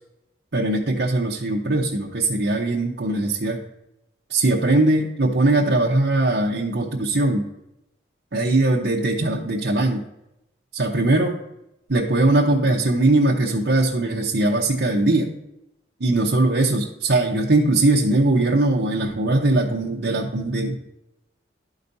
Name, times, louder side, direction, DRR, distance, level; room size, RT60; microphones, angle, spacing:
voice 1, 0.5-3.6 4.3-7.5 8.3-10.0 10.7-11.4 11.9-15.3 16.0-20.9, right 2 dB, 65° right, -3 dB, 0.8 m, -20 dB
12.0 x 5.0 x 2.7 m, 0.88 s
head